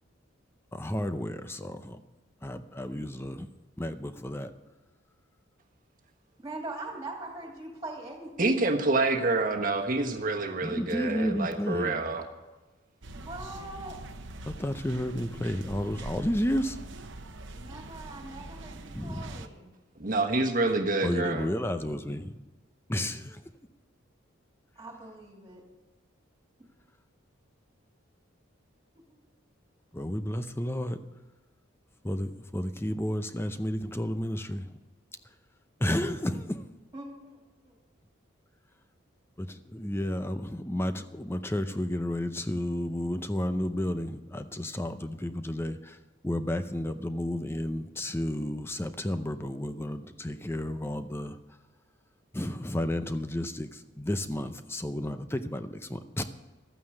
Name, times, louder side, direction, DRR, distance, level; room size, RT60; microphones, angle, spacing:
voice 1, 0.7-2.0 2.4-3.5 3.8-4.5 10.6-12.2 14.5-16.8 18.9-19.5 21.0-22.4 22.9-23.4 29.9-31.0 32.0-34.7 35.8-36.7 39.4-46.0 46.2-51.4 52.3-56.2, left 1 dB, 10° left, 10 dB, 0.6 m, -32 dB
voice 2, 6.4-8.7 13.1-14.0 17.5-19.7 24.8-25.6 29.1-29.2 36.9-37.7, right 2 dB, 15° right, 0 dB, 2.8 m, -42 dB
voice 3, 8.4-12.2 20.0-21.5, right 2 dB, 40° right, 3 dB, 1.4 m, -27 dB
sound 1, 13.0-19.5, right 2 dB, 60° right, 0.9 m, -43 dB
13.0 x 9.3 x 6.5 m, 1.2 s
head